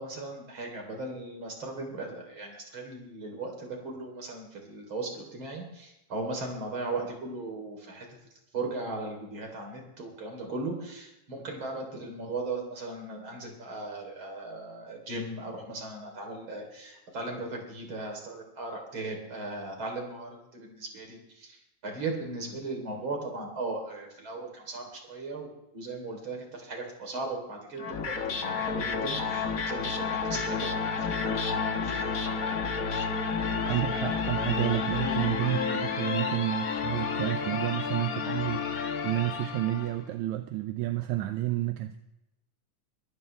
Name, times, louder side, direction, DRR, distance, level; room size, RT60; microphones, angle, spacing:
voice 1, 0.0-8.1 8.5-25.5 25.7-30.7 31.0-32.1 32.4-32.5, right 2 dB, 40° right, 2 dB, 4.2 m, -37 dB
sound 1, 27.8-40.0, left 5 dB, 60° left, 0.9 m, -30 dB
voice 2, 33.7-42.0, right 15 dB, 80° right, 8 dB, 2.0 m, -30 dB
23.5 x 14.5 x 3.4 m, 0.88 s
omnidirectional pair, 3.4 m